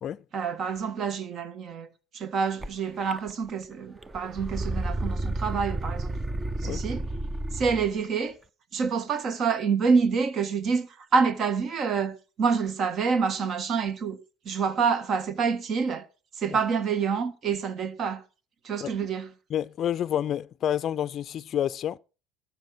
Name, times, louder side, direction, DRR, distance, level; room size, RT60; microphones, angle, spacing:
voice 1, 0.3-1.9 2.1-6.2 6.6-7.1 7.5-8.4 8.7-14.2 14.4-16.0 16.4-18.2 18.6-19.3, right 5 dB, 45° right, 1.5 m, -27 dB
sound 1, 2.6-2.7 3.1-3.7 4.0-7.9, right 2 dB, 15° right, 0.7 m, -31 dB
voice 2, 19.5-22.0, left 10 dB, 45° left, 0.5 m, -29 dB
13.0 x 7.2 x 6.2 m
supercardioid pair, 110°, 0 cm